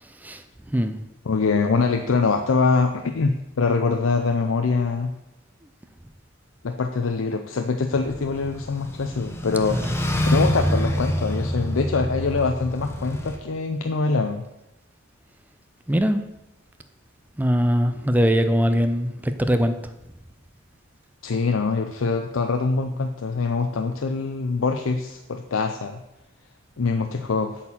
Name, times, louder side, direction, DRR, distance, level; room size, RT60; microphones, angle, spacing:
voice 1, 1.2-5.1 6.6-9.8 10.2-14.4 21.2-26.0 26.8-27.5, left 4 dB, 65° left, 6 dB, 0.5 m, -24 dB
sound 1, 7.9-13.4, equal, 10° left, 0.8 m, -26 dB
voice 2, 15.9-16.2 17.4-19.7, equal, 10° right, 9 dB, 0.5 m, -21 dB
8.1 x 4.4 x 7.2 m, 0.94 s
head